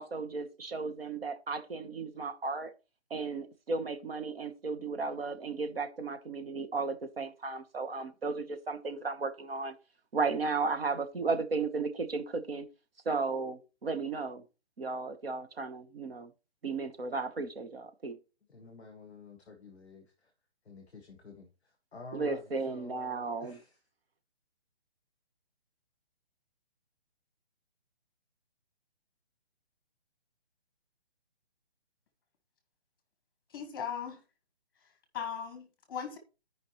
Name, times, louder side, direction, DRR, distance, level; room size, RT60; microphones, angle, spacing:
voice 1, 0.0-2.7 3.1-9.7 10.1-12.7 13.0-14.4 14.8-16.3 16.6-18.2 22.1-23.6, right 4 dB, 60° right, 1.3 m, -34 dB
voice 2, 18.5-20.3 20.6-23.8, left 3 dB, ahead, 0.6 m, -51 dB
voice 3, 33.5-34.2 35.1-36.2, left 7 dB, 20° left, 1.2 m, -38 dB
13.0 x 5.1 x 3.1 m
hypercardioid pair, 175°, 33 cm